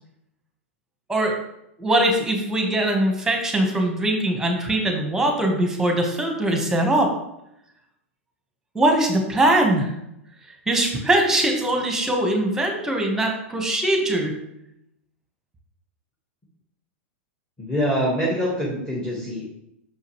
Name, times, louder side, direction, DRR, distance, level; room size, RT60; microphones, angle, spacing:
voice 1, 1.8-7.1 8.7-9.9 10.7-14.4, right 1 dB, 10° right, 2 dB, 1.4 m, -21 dB
voice 2, 17.6-19.5, equal, 10° left, -5 dB, 1.7 m, -24 dB
6.0 x 5.5 x 3.2 m, 0.81 s
hypercardioid pair, 105°, 7 cm